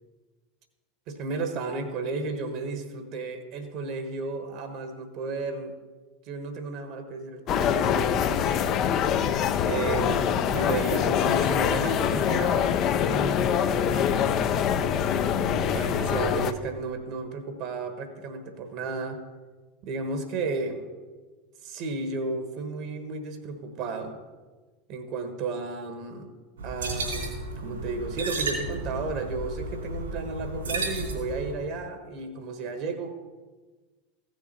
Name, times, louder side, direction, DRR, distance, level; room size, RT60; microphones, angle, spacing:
voice 1, 1.1-5.7 6.3-8.9 9.7-14.4 15.7-19.2 19.8-20.9 21.6-24.2 24.9-26.3 26.6-33.1, right 3 dB, 50° right, 8 dB, 1.3 m, -33 dB
sound 1, 7.5-16.5, left 8 dB, 40° left, 0.6 m, -24 dB
sound 2, 26.6-31.5, right 2 dB, 75° right, 3.0 m, -33 dB
15.0 x 6.5 x 4.3 m, 1.3 s
figure-of-eight pair, 80°, 0 cm